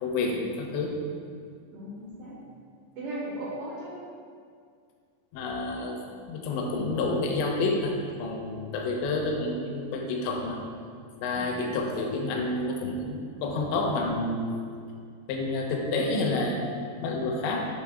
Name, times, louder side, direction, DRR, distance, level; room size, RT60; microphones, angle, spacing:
voice 1, 0.0-1.0 2.0-2.1 5.3-6.0 6.3-7.9 8.2-10.6 11.2-14.5 15.3-17.7, left 2 dB, 80° left, 1 dB, 2.9 m, -29 dB
voice 2, 1.7-2.5 2.9-4.0 11.3-11.7, right 1 dB, 90° right, -6 dB, 1.8 m, -38 dB
8.7 x 5.9 x 3.5 m, 2.2 s
omnidirectional pair, 5.5 m